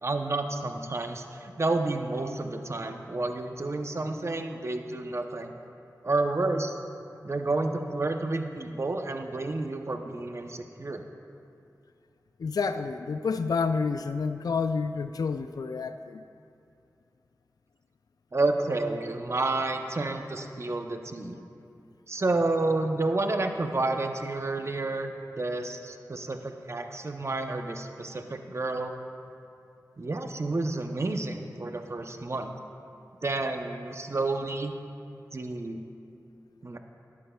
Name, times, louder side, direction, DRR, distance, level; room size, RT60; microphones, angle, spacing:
voice 1, 0.0-5.5 6.0-6.7 7.2-11.0 18.3-21.4 22.1-29.0 30.0-32.5 33.2-34.7 35.3-35.8 36.6-36.8, right 2 dB, 45° right, 5 dB, 0.7 m, -30 dB
voice 2, 12.4-16.2, left 5 dB, 75° left, 9 dB, 0.3 m, -29 dB
20.0 x 8.5 x 2.3 m, 2.6 s
wide cardioid pair, 70°, 7 cm